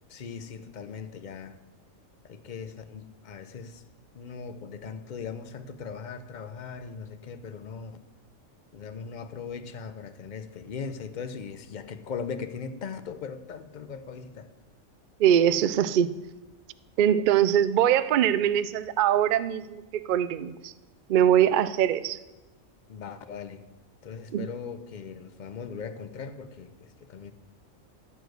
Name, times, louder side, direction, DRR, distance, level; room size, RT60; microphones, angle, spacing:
voice 1, 0.1-1.6 2.2-3.8 4.1-8.0 8.7-14.5 22.9-23.6 24.0-27.3, left 6 dB, 45° left, 0.6 m, -39 dB
voice 2, 15.2-16.1 17.0-20.7 21.1-22.2 24.3-24.5, right 10 dB, 80° right, 0.4 m, -22 dB
12.5 x 5.0 x 7.8 m
omnidirectional pair, 1.4 m